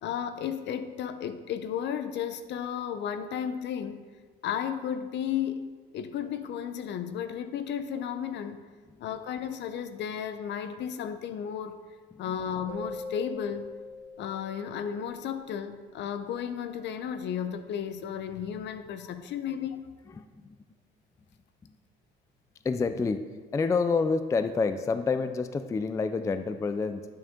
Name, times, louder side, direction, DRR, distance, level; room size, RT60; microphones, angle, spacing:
voice 1, 0.0-4.0 4.4-5.6 5.9-8.6 9.0-11.8 12.2-13.7 14.2-19.8, left 8 dB, 60° left, 11 dB, 0.7 m, -33 dB
sound 1, 12.7-14.9, left 2 dB, 70° right, 1.2 m, -41 dB
voice 2, 20.2-20.6 22.6-23.2 23.5-27.1, left 4 dB, 15° left, 10 dB, 0.3 m, -28 dB
11.0 x 6.2 x 3.7 m, 1.5 s
cardioid pair, 115°, 21 cm